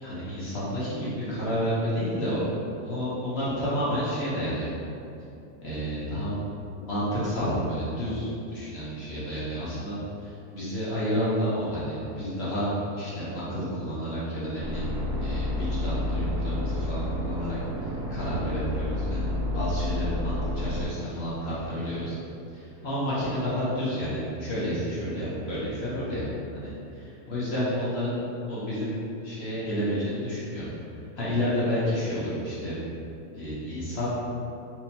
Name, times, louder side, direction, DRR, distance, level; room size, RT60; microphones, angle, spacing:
voice 1, 0.0-2.4 2.8-4.7 5.6-6.4 6.7-9.9 10.2-14.8 15.2-22.1 22.5-26.3 26.5-26.7 27.3-28.2 28.5-30.7 31.2-32.8 33.3-34.2, equal, 50° left, -9 dB, 1.0 m, -30 dB
sound 1, 14.6-20.9, left 1 dB, 85° right, 1.5 m, -30 dB
4.4 x 2.8 x 2.7 m, 2.7 s
omnidirectional pair, 1.7 m